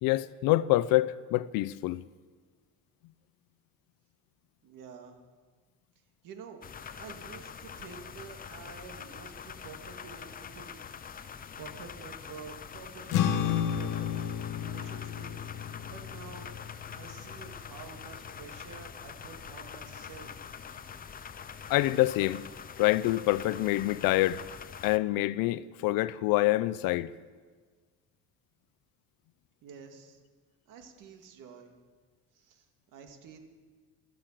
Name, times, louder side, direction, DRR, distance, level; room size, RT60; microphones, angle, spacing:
voice 1, 0.0-2.0 21.7-22.4 22.8-24.4 24.8-27.1, left 17 dB, 80° left, 0.6 m, -26 dB
voice 2, 4.6-5.2 6.2-6.7 7.0-10.8 11.6-15.4 15.9-16.5 16.9-20.5 29.6-30.2 30.7-31.7 32.3-33.4, right 6 dB, 65° right, 2.3 m, -49 dB
sound 1, 6.6-25.0, left 7 dB, 25° left, 0.6 m, -45 dB
sound 2, 13.1-19.7, left 9 dB, 60° left, 1.2 m, -33 dB
14.0 x 13.5 x 7.6 m
cardioid pair, 150°, 35 cm